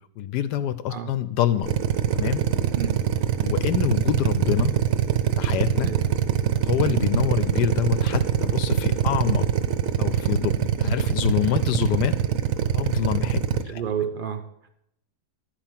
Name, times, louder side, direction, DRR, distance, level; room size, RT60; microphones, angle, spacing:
voice 1, 0.2-1.7 2.1-2.4 3.4-4.7 5.4-5.9 6.6-9.5 10.0-12.1 12.7-13.8, left 11 dB, 75° left, 13 dB, 1.1 m, -26 dB
Drill, 1.6-13.6, right 10 dB, 65° right, 0.9 m, -23 dB
voice 2, 13.7-14.7, right 8 dB, 80° right, 7 dB, 0.4 m, -30 dB
11.0 x 4.9 x 7.3 m, 0.76 s
omnidirectional pair, 1.9 m